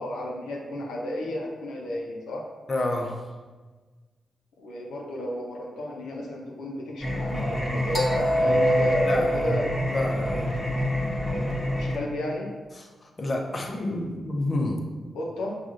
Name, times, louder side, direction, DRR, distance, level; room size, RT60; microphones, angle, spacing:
voice 1, 0.0-2.5 4.6-9.7 11.7-12.5 15.1-15.6, left 1 dB, 85° left, -2 dB, 0.6 m, -32 dB
voice 2, 2.7-3.2 9.1-9.5 9.9-10.5 12.8-14.8, left 1 dB, 40° left, 1 dB, 0.7 m, -29 dB
Singing, 7.0-12.0, equal, 15° left, 1.3 m, -25 dB
6.0 x 2.4 x 2.5 m, 1.3 s
supercardioid pair, 45°, 0 cm